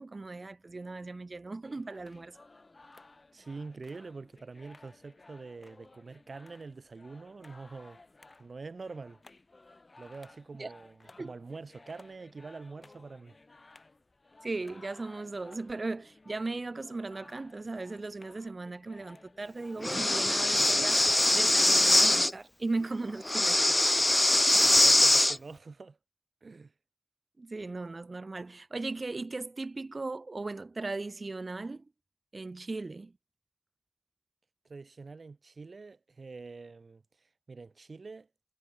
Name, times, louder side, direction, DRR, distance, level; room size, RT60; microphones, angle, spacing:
voice 1, 0.0-2.4 10.6-10.7 11.2-11.3 14.4-21.1 21.3-23.9 27.4-31.8 32.3-33.1, right 3 dB, 50° right, 3.3 m, -37 dB
sound 1, 1.6-20.3, left 2 dB, 45° left, 4.6 m, -57 dB
voice 2, 3.3-8.0 8.4-9.2 10.0-13.4 24.6-26.0 26.4-26.7 34.7-38.3, right 4 dB, 70° right, 3.7 m, -45 dB
Breathing, 19.8-22.3 23.3-25.4, left 1 dB, 20° left, 0.6 m, -23 dB
wide cardioid pair, 65°, 0 cm